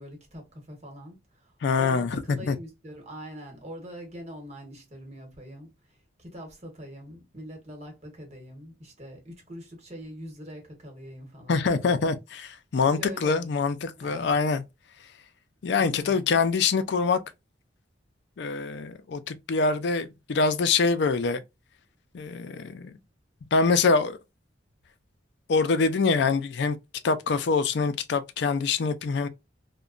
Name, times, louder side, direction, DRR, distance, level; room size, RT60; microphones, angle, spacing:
voice 1, 0.0-12.2 12.8-13.6 14.0-14.5 15.8-16.3, equal, 35° right, 1.1 m, -43 dB
voice 2, 1.6-2.5 11.5-14.6 15.6-17.2 18.4-21.4 22.1-22.9 23.5-24.2 25.5-26.8 27.0-29.3, left 4 dB, 60° left, 0.4 m, -25 dB
2.8 x 2.1 x 2.4 m
head